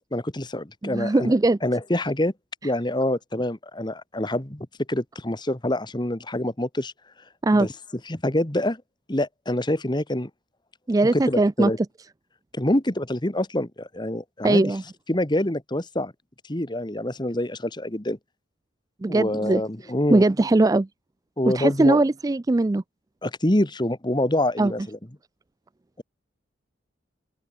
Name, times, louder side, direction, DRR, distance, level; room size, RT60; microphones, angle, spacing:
voice 1, 0.1-1.3 1.6-2.3 2.6-6.9 7.6-7.7 8.1-8.8 9.1-10.3 11.1-11.8 12.5-14.6 15.1-16.1 16.5-18.2 19.1-20.2 21.4-22.0 23.2-25.0, left 1 dB, 20° left, 1.6 m, -26 dB
voice 2, 0.8-1.6 7.4-7.7 10.9-11.7 14.4-14.8 19.0-19.6 20.1-20.9 21.5-22.8 24.6-24.7, right 2 dB, 20° right, 0.3 m, -20 dB
open air
head